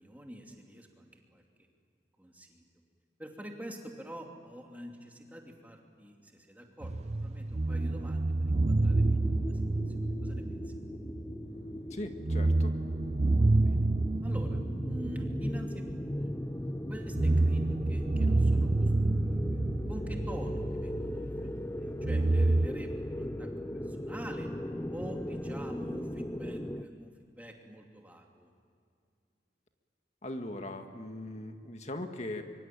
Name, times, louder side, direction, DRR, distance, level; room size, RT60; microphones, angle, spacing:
voice 1, 0.0-1.4 2.2-2.7 3.2-9.6 9.9-10.7 13.4-13.9 14.2-16.4 16.9-19.6 19.9-23.5 23.8-24.5 24.9-28.5, equal, 10° right, 1 dB, 2.7 m, -46 dB
sound 1, 6.8-11.5 11.8-11.9 12.2-16.4 17.0-21.3 22.0-22.7, right 2 dB, 40° right, 0.6 m, -28 dB
sound 2, 8.9-26.8, equal, 15° left, 0.7 m, -38 dB
voice 2, 11.9-12.7 30.2-32.4, left 1 dB, 40° left, 6 dB, 1.9 m, -39 dB
24.5 x 24.0 x 9.1 m, 2.3 s
head